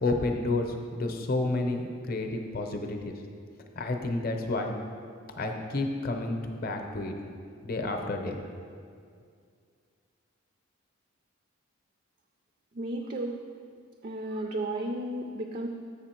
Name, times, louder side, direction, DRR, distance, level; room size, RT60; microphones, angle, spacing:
voice 1, 0.0-3.1 3.7-4.7 5.4-7.1 7.6-8.4, left 2 dB, 45° left, 4 dB, 0.7 m, -30 dB
voice 2, 12.7-13.4 14.0-15.7, right 1 dB, 40° right, 4 dB, 0.4 m, -33 dB
7.0 x 6.9 x 4.4 m, 2.2 s
head